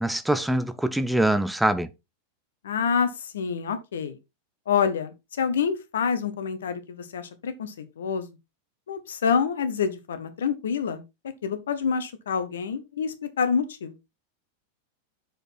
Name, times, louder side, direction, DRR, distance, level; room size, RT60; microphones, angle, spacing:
voice 1, 0.0-1.9, right 1 dB, 5° right, 0.6 m, -24 dB
voice 2, 2.6-4.2 4.7-8.3 8.9-11.0 11.4-13.9, left 6 dB, 65° left, 1.1 m, -27 dB
6.4 x 5.0 x 4.3 m
figure-of-eight pair, 90°, 0 cm